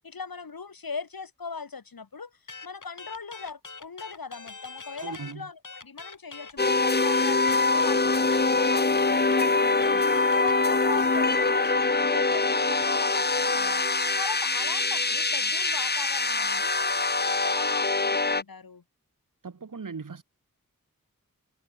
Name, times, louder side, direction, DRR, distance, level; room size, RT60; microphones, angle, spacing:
voice 1, 0.0-13.8 14.2-18.8, left 5 dB, 80° left, 1.5 m, -40 dB
sound 1, 2.5-5.3 5.6-13.0, left 4 dB, 60° left, 1.7 m, -43 dB
voice 2, 5.0-5.5 19.4-20.2, right 5 dB, 60° right, 1.3 m, -38 dB
sound 2, 6.6-18.4, left 3 dB, 30° left, 0.9 m, -24 dB
wide cardioid pair, 50°, 35 cm